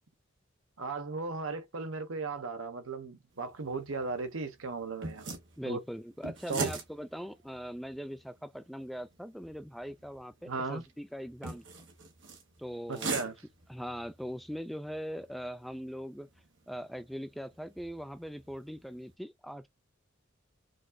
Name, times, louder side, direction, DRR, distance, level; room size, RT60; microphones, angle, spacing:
voice 1, 0.8-5.8 6.5-6.7 10.5-10.8 12.9-13.4, right 4 dB, 80° right, 0.9 m, -36 dB
sound 1, 3.3-19.1, right 3 dB, 60° right, 1.2 m, -44 dB
voice 2, 5.6-11.6 12.6-13.2 13.7-16.3 16.7-19.7, equal, ahead, 0.3 m, -41 dB
5.1 x 2.5 x 2.2 m
head